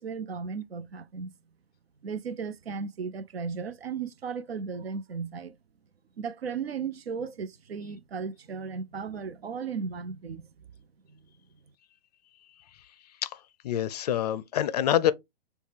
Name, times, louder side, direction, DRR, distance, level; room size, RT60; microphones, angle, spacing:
voice 1, 0.0-1.3 2.0-5.6 6.2-10.5 11.1-11.2, right 5 dB, 90° right, 0.6 m, -35 dB
voice 2, 13.6-15.1, left 11 dB, 45° left, 0.4 m, -26 dB
5.2 x 2.3 x 3.3 m
hypercardioid pair, 140°, 30 cm